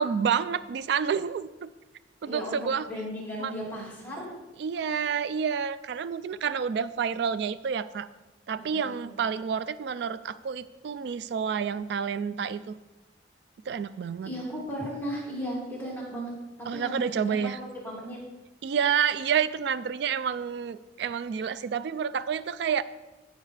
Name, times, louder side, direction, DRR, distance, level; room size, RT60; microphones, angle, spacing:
voice 1, 0.0-1.7 2.2-2.9 3.4-3.5 4.6-8.1 8.5-12.7 13.7-14.3 16.7-17.6 18.6-22.8, right 7 dB, 60° right, 15 dB, 0.3 m, -29 dB
voice 2, 2.3-4.3 8.5-9.1 14.2-16.3 16.7-18.2, equal, 10° left, -5 dB, 2.3 m, -36 dB
16.0 x 5.6 x 3.3 m, 1.1 s
head